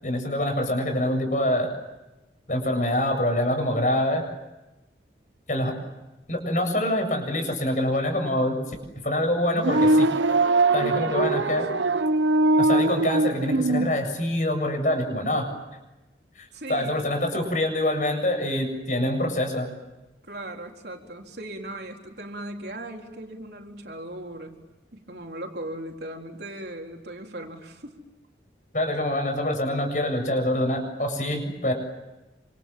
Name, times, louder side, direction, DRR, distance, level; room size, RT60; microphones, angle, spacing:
voice 1, 0.0-1.7 2.5-4.3 5.5-5.8 6.3-10.1 10.7-11.6 12.6-15.5 16.4-19.7 28.7-31.7, left 1 dB, 45° left, 5 dB, 7.5 m, -25 dB
sound 1, 9.5-13.9, right 2 dB, 85° right, 0.9 m, -21 dB
voice 2, 10.8-11.8 16.5-17.1 20.2-24.6 24.9-27.9, right 1 dB, 60° right, 2 dB, 4.1 m, -38 dB
27.5 x 27.0 x 7.6 m, 1.0 s
head